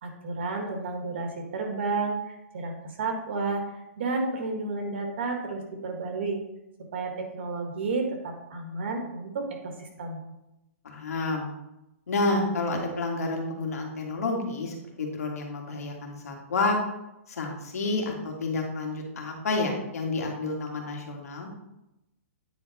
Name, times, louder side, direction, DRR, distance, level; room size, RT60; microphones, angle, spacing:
voice 1, 0.0-6.4 6.9-10.2, right 3 dB, 50° right, 3 dB, 1.6 m, -31 dB
voice 2, 10.8-11.5 12.1-16.8 17.3-21.5, left 3 dB, 90° left, 1 dB, 2.0 m, -29 dB
9.5 x 4.5 x 4.1 m, 0.91 s
hypercardioid pair, 175°, 8 cm